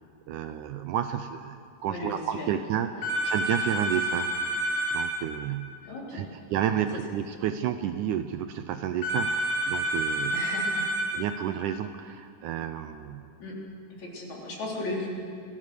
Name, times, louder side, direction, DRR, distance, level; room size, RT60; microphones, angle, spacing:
voice 1, 0.3-4.3 4.9-5.7 6.1-10.4 11.1-13.2, right 10 dB, 75° right, 9 dB, 2.0 m, -31 dB
voice 2, 1.9-2.5 3.0-3.1 5.8-6.3 6.7-6.9 10.3-10.9 13.4-13.6 14.0-15.1, left 2 dB, 55° left, -2 dB, 4.9 m, -36 dB
sound 1, 3.0-5.1 9.0-11.1, right 1 dB, 90° left, 6.8 m, -28 dB
26.0 x 18.0 x 6.8 m, 2.5 s
omnidirectional pair, 4.0 m